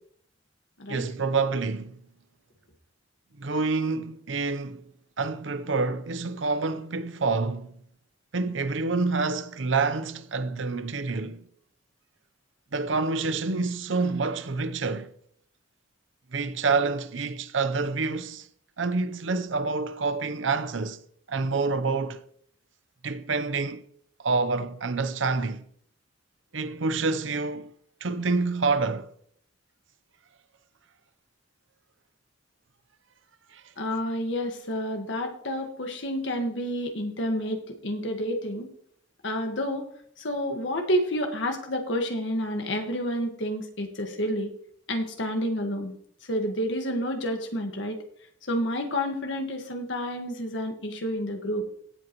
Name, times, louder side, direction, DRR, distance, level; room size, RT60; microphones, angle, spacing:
voice 1, 0.9-2.0 3.4-4.8 5.2-7.7 8.3-11.5 12.7-15.1 16.3-18.5 18.8-21.0 21.3-22.2 23.0-23.8 24.2-25.6 26.5-27.7 28.0-29.1 33.5-33.6, right 4 dB, 80° right, 0.8 m, -27 dB
voice 2, 33.8-38.7 39.2-39.8 40.2-44.5 44.9-45.9 46.3-48.0 48.5-51.6, equal, 70° left, 1.6 m, -29 dB
17.0 x 7.9 x 3.1 m
head